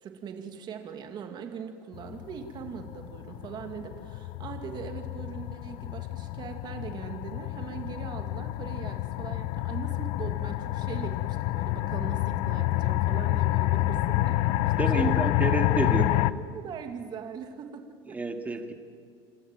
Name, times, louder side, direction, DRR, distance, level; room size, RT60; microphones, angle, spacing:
voice 1, 0.0-15.3 15.8-18.2, right 7 dB, 40° right, 5 dB, 2.4 m, -41 dB
sound 1, 1.9-16.3, left 17 dB, 65° left, 0.7 m, -28 dB
voice 2, 14.8-16.1 18.1-18.7, right 3 dB, 15° right, 6 dB, 2.0 m, -29 dB
28.5 x 13.5 x 9.3 m, 2.3 s
supercardioid pair, 130°, 11 cm